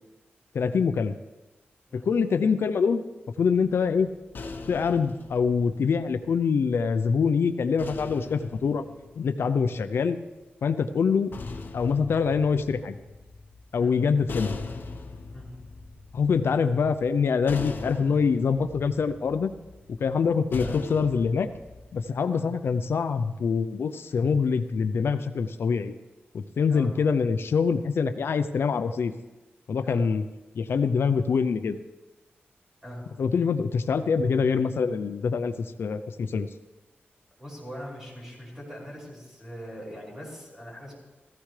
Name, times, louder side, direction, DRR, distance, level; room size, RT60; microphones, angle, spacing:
voice 1, 0.5-1.1 1.9-3.0 3.4-4.1 4.7-8.8 9.2-10.2 10.6-11.3 11.7-12.9 13.7-14.6 16.1-19.5 20.0-21.5 21.9-25.9 26.3-29.1 29.7-30.2 30.6-31.8 33.2-35.5 35.8-36.5, left 5 dB, 80° left, 10 dB, 0.5 m, -24 dB
sound 1, 3.6-6.8 7.8-10.0 11.0-22.1, left 3 dB, 55° left, 0.9 m, -41 dB
voice 2, 37.4-41.0, equal, 15° right, -5 dB, 5.4 m, -41 dB
15.0 x 15.0 x 3.3 m, 1.1 s
wide cardioid pair, 140°, 4 cm